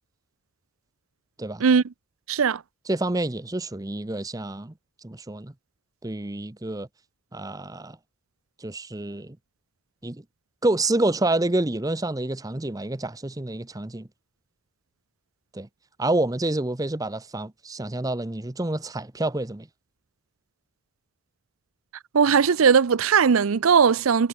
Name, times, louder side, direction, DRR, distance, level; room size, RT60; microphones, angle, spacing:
voice 1, 2.3-2.6 22.1-24.3, right 6 dB, 75° right, 0.5 m, -19 dB
voice 2, 2.9-4.7 5.0-5.5 6.0-6.9 7.3-8.0 8.6-9.4 10.0-10.2 10.6-14.1 15.5-15.7 16.0-19.7, right 2 dB, 15° right, 0.7 m, -28 dB
head